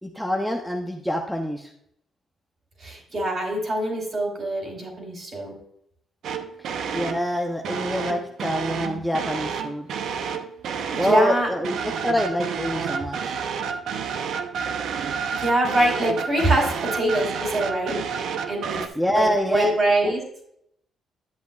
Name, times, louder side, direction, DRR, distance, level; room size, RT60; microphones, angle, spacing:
voice 1, 0.0-1.7 6.9-9.9 10.9-13.3 19.0-19.7 20.0-20.1, equal, ahead, 2 dB, 0.7 m, -26 dB
voice 2, 2.8-5.5 10.9-11.5 15.3-18.0 18.5-20.2, right 1 dB, 45° right, 0 dB, 3.8 m, -24 dB
sound 1, 6.2-7.3 7.6-11.3 11.6-18.9, right 6 dB, 75° right, 0.7 m, -30 dB
10.5 x 7.9 x 2.4 m, 0.70 s
cardioid pair, 90°, 0 cm